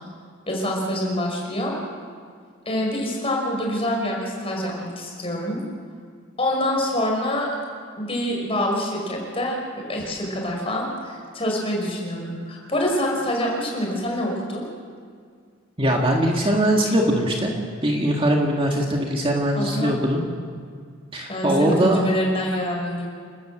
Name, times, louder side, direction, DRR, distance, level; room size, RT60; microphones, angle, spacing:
voice 1, 0.5-1.7 2.7-5.6 6.4-7.5 8.0-14.7 19.6-19.9 21.3-23.1, left 1 dB, 30° left, -1 dB, 5.5 m, -26 dB
voice 2, 15.8-17.5 17.8-20.2 21.1-22.1, right 1 dB, 25° right, 0 dB, 2.0 m, -21 dB
29.5 x 13.0 x 7.7 m, 2.1 s
head